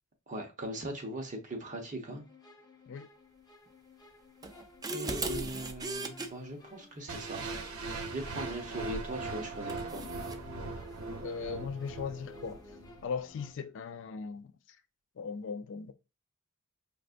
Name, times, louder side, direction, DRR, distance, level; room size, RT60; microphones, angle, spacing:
voice 1, 0.3-2.2 4.9-7.5 7.7-10.1, right 1 dB, 35° right, 0.9 m, -40 dB
sound 1, 2.1-13.5, left 3 dB, 20° left, 0.7 m, -55 dB
sound 2, 4.4-6.3 8.9-9.1 9.7-10.4, right 2 dB, 20° right, 0.4 m, -37 dB
sound 3, 7.1-13.1, right 3 dB, 90° right, 0.7 m, -40 dB
voice 2, 11.2-12.6 13.0-14.5 15.2-15.9, left 5 dB, 60° left, 0.4 m, -38 dB
5.1 x 2.5 x 2.5 m
head